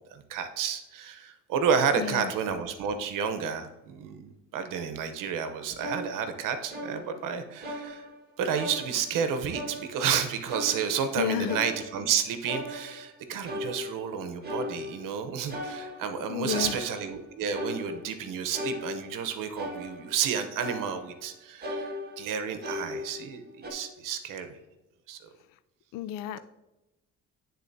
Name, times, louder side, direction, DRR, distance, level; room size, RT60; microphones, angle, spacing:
voice 1, 0.1-8.1 8.4-24.6 25.1-25.2, right 7 dB, 75° right, 8 dB, 0.9 m, -31 dB
voice 2, 1.9-2.3 11.2-11.6 16.3-16.8 25.9-26.4, left 11 dB, 85° left, 14 dB, 0.5 m, -31 dB
sound 1, 5.8-7.3 7.6-8.3 8.5-9.2 9.5-10.1 10.5-12.1 12.5-13.2 13.4-14.1 14.4-15.1 15.5-17.2 17.5-18.2 18.5-19.3 19.6-20.3 20.6-21.3 21.6-23.4 23.6-23.7, left 1 dB, 30° right, 1.6 m, -38 dB
11.5 x 3.9 x 2.7 m, 0.99 s
cardioid pair, 80°, 32 cm